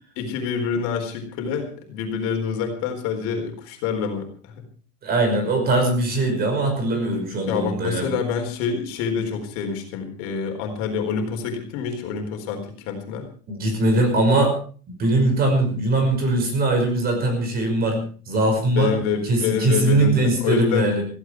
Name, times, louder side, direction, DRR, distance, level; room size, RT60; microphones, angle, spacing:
voice 1, 0.2-4.6 7.5-13.3 18.7-20.9, left 6 dB, 50° left, 4 dB, 4.3 m, -27 dB
voice 2, 5.0-8.1 13.5-14.6 14.9-18.0 18.3-18.9 19.2-21.0, right 2 dB, 25° right, 5 dB, 5.6 m, -21 dB
16.5 x 15.5 x 4.7 m, 0.41 s
supercardioid pair, 170°, 34 cm